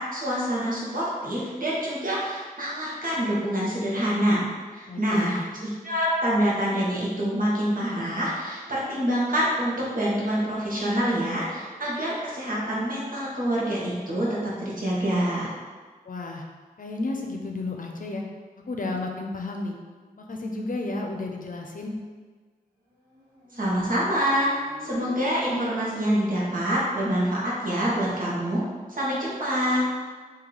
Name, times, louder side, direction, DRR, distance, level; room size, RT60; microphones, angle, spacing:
voice 1, 0.0-4.5 4.7-15.5 23.5-24.5 24.8-28.6 28.9-29.9, equal, 60° right, -6 dB, 1.2 m, -26 dB
voice 2, 4.9-5.4 16.0-16.4 16.8-18.2 18.7-19.8 20.2-22.0, left 2 dB, 60° left, 1 dB, 0.6 m, -32 dB
Motorcycle, 22.9-26.6, left 1 dB, 85° right, 1.4 m, -46 dB
3.1 x 2.7 x 3.9 m, 1.5 s
cardioid pair, 45°, 16 cm